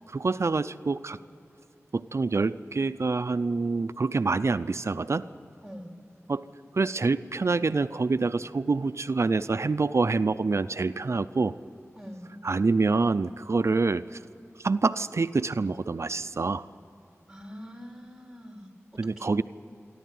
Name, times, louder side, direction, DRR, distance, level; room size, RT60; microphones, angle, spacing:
voice 1, 0.1-1.2 1.9-5.2 6.3-6.4 6.7-11.5 12.4-14.2 14.6-16.6 19.0-19.4, right 3 dB, 65° right, 13 dB, 0.5 m, -26 dB
voice 2, 5.6-5.9 11.9-12.4 17.3-19.3, equal, 10° right, 2 dB, 3.4 m, -44 dB
28.0 x 12.0 x 9.3 m, 2.7 s
wide cardioid pair, 50°, 5 cm